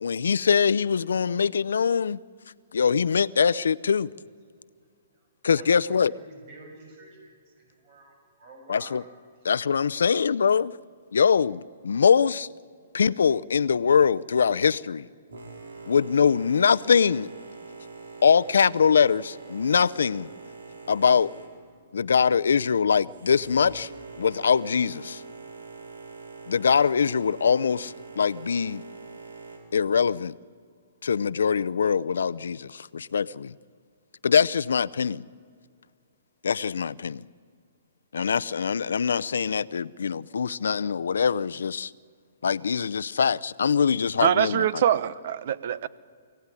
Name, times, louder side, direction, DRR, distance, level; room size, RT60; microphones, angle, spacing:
voice 1, 0.0-2.2 2.7-4.1 5.4-6.1 8.7-9.0 9.4-10.8 11.1-12.5 12.9-15.1 15.9-17.3 18.2-20.3 20.9-21.3 21.9-23.9 24.2-25.2 26.5-28.8 29.7-30.3 31.0-33.5 34.2-35.2 36.4-37.3 38.1-41.9 42.4-44.6, left 6 dB, 85° left, 0.6 m, -23 dB
voice 2, 5.1-9.0, right 2 dB, 40° right, 6.7 m, -49 dB
Boat Water vehicle, 15.3-29.6, right 4 dB, 90° right, 5.6 m, -44 dB
voice 3, 44.2-45.9, right 10 dB, 55° right, 1.0 m, -24 dB
24.0 x 17.0 x 9.9 m
hypercardioid pair, 150°, 0 cm